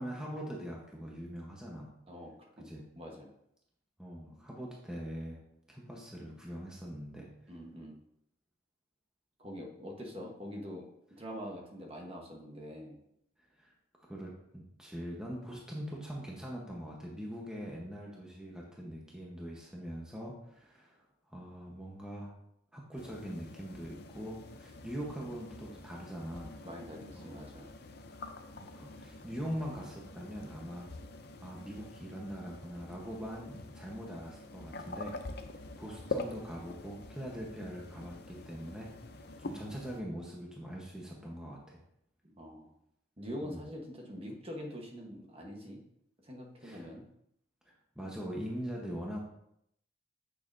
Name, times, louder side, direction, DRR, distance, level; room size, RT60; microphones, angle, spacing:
voice 1, 0.0-2.0 2.6-2.9 4.0-5.4 5.7-7.4 13.6-13.7 14.0-21.0 21.3-22.3 22.7-26.6 27.1-27.4 28.5-30.9 31.4-35.2 35.5-38.9 39.4-41.8 43.4-43.6 46.6-46.9 47.9-49.2, equal, 5° right, -3 dB, 1.0 m, -42 dB
voice 2, 2.1-2.7 3.0-3.3 7.5-8.0 9.4-10.9 11.2-13.0 26.6-27.7 42.4-42.7 43.2-45.8 46.2-47.0, equal, 30° right, 0 dB, 1.2 m, -44 dB
sound 1, 23.0-40.0, left 2 dB, 55° left, 0.6 m, -46 dB
9.2 x 6.5 x 2.7 m, 0.75 s
head